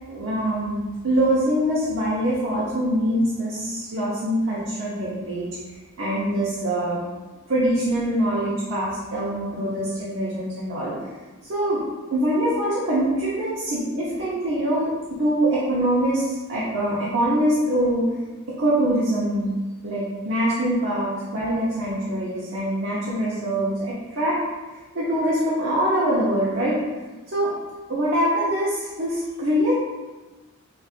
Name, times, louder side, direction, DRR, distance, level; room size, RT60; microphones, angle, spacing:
voice 1, 0.1-5.5 6.0-7.0 7.5-10.9 11.5-11.8 12.1-14.9 15.2-18.1 18.6-19.5 19.8-24.4 24.9-26.8 27.3-27.5 27.9-29.8, right 1 dB, 60° right, -7 dB, 0.7 m, -23 dB
5.1 x 2.4 x 2.4 m, 1.2 s
head